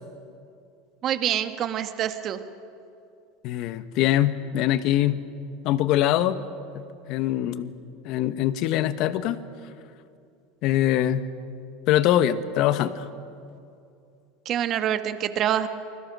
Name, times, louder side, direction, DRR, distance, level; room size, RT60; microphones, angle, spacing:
voice 1, 1.0-2.4 14.4-15.7, right 10 dB, 45° right, 9 dB, 1.5 m, -26 dB
voice 2, 3.4-5.2 5.6-6.4 6.7-6.8 7.1-7.7 8.0-9.4 10.6-11.2 11.9-13.1, left 12 dB, 55° left, 12 dB, 1.2 m, -23 dB
29.0 x 21.0 x 6.2 m, 2.6 s
supercardioid pair, 115°, 0 cm